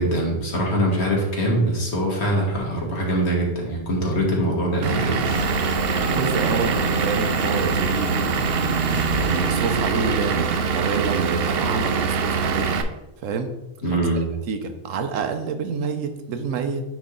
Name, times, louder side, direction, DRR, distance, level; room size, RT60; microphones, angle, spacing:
voice 1, 0.0-5.3 13.8-14.3, right 1 dB, 60° left, -2 dB, 1.8 m, -23 dB
Vehicle / Engine, 4.8-12.8, right 5 dB, 60° right, 0.7 m, -23 dB
sound 1, 5.2-10.6, left 5 dB, 75° left, 1.0 m, -34 dB
voice 2, 5.9-8.4 9.2-12.7 13.2-13.5 13.9-14.0 14.5-16.8, right 5 dB, 80° right, 7 dB, 1.1 m, -27 dB
9.2 x 3.2 x 3.8 m, 0.95 s
omnidirectional pair, 1.3 m